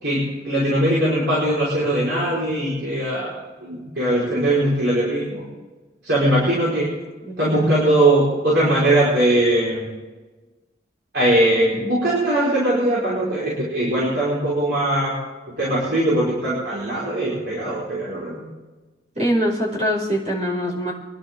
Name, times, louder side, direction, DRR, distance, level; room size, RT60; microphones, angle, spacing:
voice 1, 0.0-5.4 6.0-6.9 7.4-9.9 11.1-15.1 15.6-18.4, right 1 dB, 75° right, -7 dB, 4.7 m, -20 dB
voice 2, 7.3-7.7 19.2-20.9, equal, 40° right, -5 dB, 5.5 m, -23 dB
25.0 x 11.0 x 3.7 m, 1.2 s
head